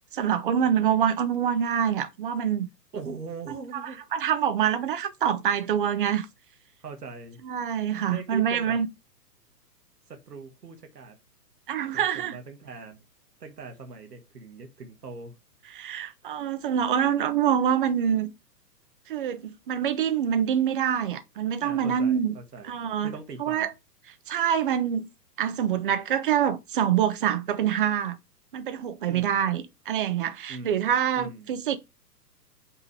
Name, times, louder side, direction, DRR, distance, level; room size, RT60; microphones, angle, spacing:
voice 1, 0.2-2.7 3.5-3.6 4.1-6.3 7.4-8.9 11.7-12.4 15.7-18.3 19.1-22.3 22.7-23.1 23.4-23.7 24.3-25.1 25.4-28.2 28.5-31.8, right 9 dB, 35° right, 0.7 m, -25 dB
voice 2, 2.9-4.0 6.8-7.4 8.1-8.8 10.1-11.2 11.9-13.0 13.4-15.4 21.6-22.7 23.0-23.7 29.0-29.4 30.5-31.5, right 4 dB, 70° right, 1.7 m, -41 dB
5.8 x 3.9 x 5.6 m
figure-of-eight pair, 115°, 49 cm